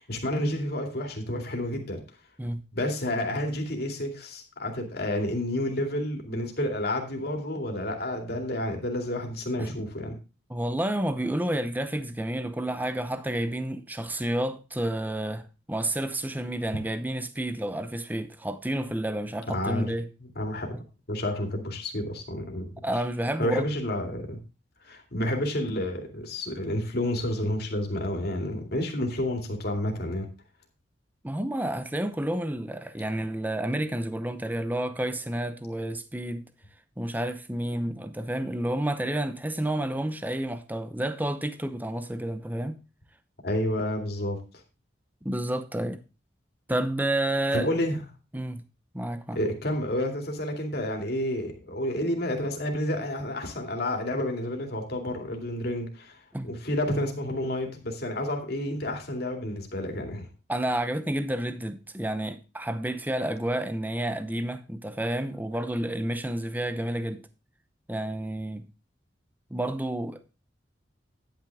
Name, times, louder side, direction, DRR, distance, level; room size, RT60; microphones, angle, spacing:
voice 1, 0.0-2.0 2.7-10.2 19.5-19.9 20.2-20.7 21.1-22.7 23.4-24.4 24.8-30.3 43.4-44.4 47.5-48.0 49.3-60.3, left 1 dB, 55° left, 2.5 m, -30 dB
voice 2, 10.5-20.1 20.7-20.8 22.8-23.7 31.2-36.4 37.0-42.8 45.2-46.0 46.7-47.7 48.3-48.6 48.9-49.4 56.3-56.6 60.5-67.2 67.9-68.7 69.5-70.3, right 1 dB, 10° right, 0.7 m, -30 dB
10.5 x 9.0 x 3.5 m
head